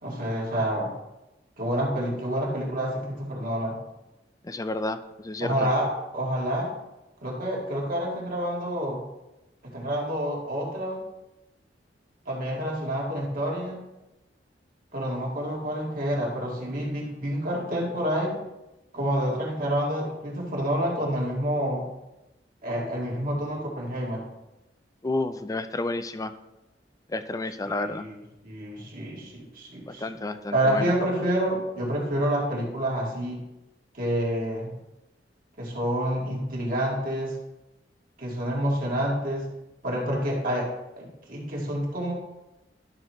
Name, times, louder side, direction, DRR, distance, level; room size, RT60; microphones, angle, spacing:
voice 1, 0.0-0.9 1.6-3.8 5.4-6.7 7.2-9.0 9.6-11.0 12.3-13.8 14.9-18.4 18.9-21.9 22.6-24.3 27.6-30.1 30.5-33.4 33.9-34.7 35.6-37.4 38.2-39.4 39.8-40.7 41.0-42.1, equal, 50° right, -2 dB, 2.0 m, -28 dB
voice 2, 4.4-5.7 25.0-26.3 27.1-28.0 29.9-30.9, left 2 dB, 20° left, 11 dB, 0.4 m, -31 dB
11.5 x 6.3 x 3.1 m, 0.98 s
head